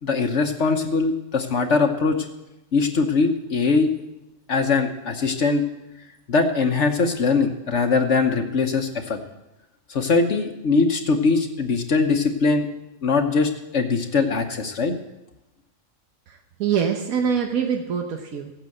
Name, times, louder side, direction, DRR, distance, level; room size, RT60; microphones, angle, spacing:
voice 1, 0.0-2.3 2.7-3.9 4.5-5.6 6.3-9.2 9.9-12.7 13.0-15.0, left 4 dB, 60° left, 5 dB, 1.3 m, -21 dB
voice 2, 16.3-18.5, right 7 dB, 85° right, 3 dB, 1.5 m, -24 dB
14.5 x 8.9 x 7.7 m, 0.94 s
omnidirectional pair, 1.4 m